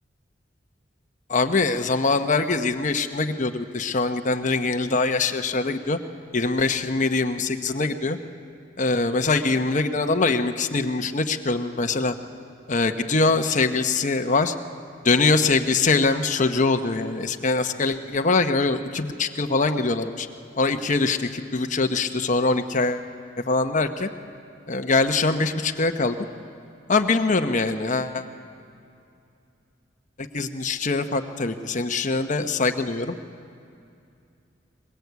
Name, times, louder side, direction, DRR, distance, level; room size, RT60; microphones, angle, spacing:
voice 1, 1.3-6.0 6.3-8.2 8.8-12.1 12.7-14.5 15.0-20.3 20.6-23.1 23.5-24.1 24.7-26.2 26.9-28.3 30.2-33.1, left 3 dB, 40° left, 6 dB, 1.0 m, -23 dB
22.5 x 21.0 x 8.2 m, 2.5 s
head